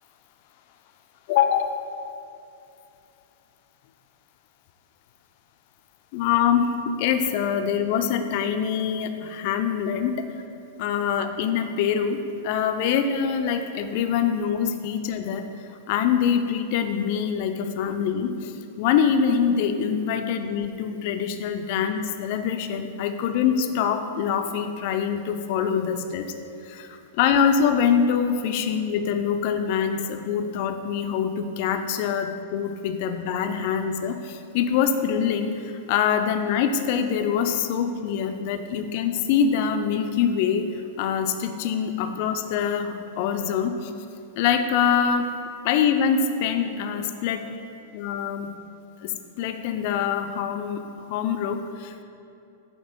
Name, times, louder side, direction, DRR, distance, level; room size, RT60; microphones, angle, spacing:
voice 1, 1.3-1.8 6.1-10.3 10.8-12.2 12.4-15.4 15.9-26.3 26.6-40.7 41.0-43.9 44.4-45.3 45.6-47.4 47.9-48.5 49.0-49.1 49.4-50.8 51.1-52.0, left 7 dB, 55° left, 7 dB, 0.5 m, -24 dB
8.0 x 2.9 x 5.3 m, 2.7 s
hypercardioid pair, 110°, 0 cm